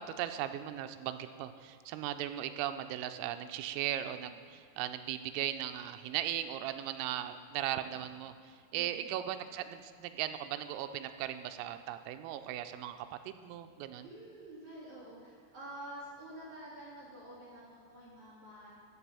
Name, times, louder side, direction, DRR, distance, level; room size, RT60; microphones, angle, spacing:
voice 1, 0.0-8.3 8.7-13.0 13.3-14.1, right 12 dB, 85° right, 8 dB, 3.2 m, -37 dB
voice 2, 8.7-9.1 14.0-18.7, right 1 dB, 45° right, -8 dB, 2.7 m, -48 dB
16.0 x 5.4 x 7.0 m, 2.1 s
omnidirectional pair, 5.8 m